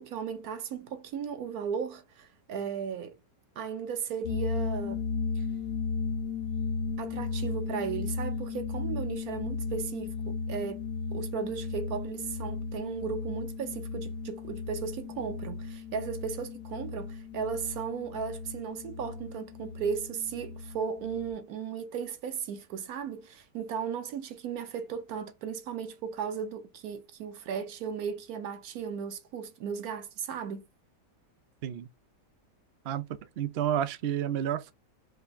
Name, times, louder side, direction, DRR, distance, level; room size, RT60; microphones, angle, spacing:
voice 1, 0.0-3.2 3.6-5.0 5.4-5.5 7.0-10.8 11.1-30.6, right 7 dB, 65° right, 1.3 m, -36 dB
sound 1, 4.2-21.3, left 5 dB, 70° left, 1.0 m, -35 dB
voice 2, 33.4-34.7, right 10 dB, 85° right, 0.5 m, -30 dB
5.0 x 2.5 x 3.5 m
omnidirectional pair, 1.8 m